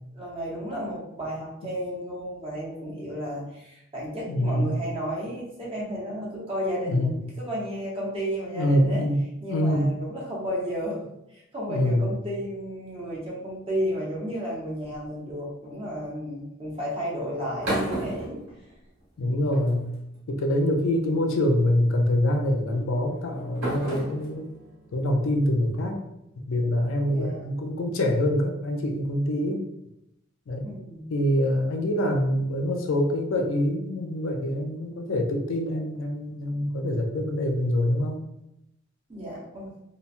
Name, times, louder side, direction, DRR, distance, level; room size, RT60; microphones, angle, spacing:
voice 1, 0.1-9.0 9.4-11.0 11.3-18.4 19.2-19.3 20.8-21.0 27.1-27.4 30.6-31.1 39.1-39.7, equal, 30° right, -5 dB, 0.8 m, -33 dB
voice 2, 4.3-4.8 6.9-7.2 8.5-9.2 9.5-9.9 11.7-12.0 19.2-19.9 20.3-24.5 24.9-26.0 26.4-29.6 30.5-30.7 31.1-38.2, left 1 dB, 75° left, 3 dB, 0.4 m, -25 dB
sound 1, 14.8-15.3 17.2-19.1 19.5-20.2 21.2-21.5 22.7-26.0, right 1 dB, 75° right, 1.2 m, -34 dB
2.9 x 2.1 x 2.5 m, 0.83 s
head